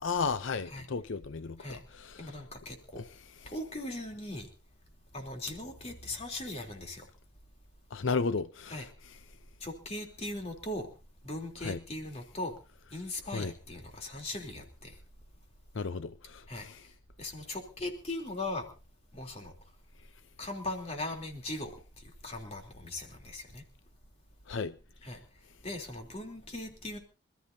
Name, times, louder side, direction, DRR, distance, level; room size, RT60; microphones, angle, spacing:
voice 1, 0.0-2.3 3.0-3.1 7.9-8.8 11.6-11.8 13.3-13.5 15.7-16.8 24.5-24.7, left 4 dB, 80° left, 0.6 m, -34 dB
voice 2, 2.2-3.0 3.4-4.5 5.1-7.1 8.7-8.9 9.6-10.9 11.2-12.6 12.9-15.0 16.5-16.7 17.2-18.7 19.1-19.5 20.4-23.6 25.0-25.2 25.6-27.0, left 2 dB, 30° left, 3.4 m, -39 dB
26.5 x 13.5 x 2.8 m
head